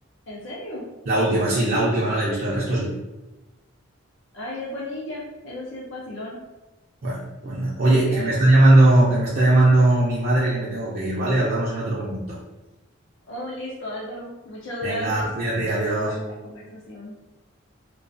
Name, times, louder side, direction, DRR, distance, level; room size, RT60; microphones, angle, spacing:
voice 1, 0.3-0.8 4.3-6.4 7.9-8.4 13.3-15.2 15.8-17.1, left 1 dB, 60° left, -5 dB, 0.5 m, -34 dB
voice 2, 1.1-2.9 7.0-12.4 14.8-16.2, right 1 dB, 45° right, -7 dB, 0.4 m, -20 dB
2.3 x 2.3 x 2.4 m, 1.0 s
head